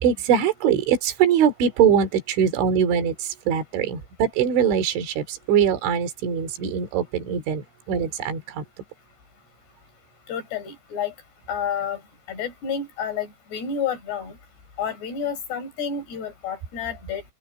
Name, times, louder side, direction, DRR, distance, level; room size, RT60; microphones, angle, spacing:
voice 1, 0.0-8.6, right 8 dB, 65° right, 5.6 m, -22 dB
voice 2, 10.3-11.1 11.5-12.0 12.3-14.4 14.8-17.2, left 7 dB, 55° left, 7.8 m, -30 dB
open air
omnidirectional pair, 5.9 m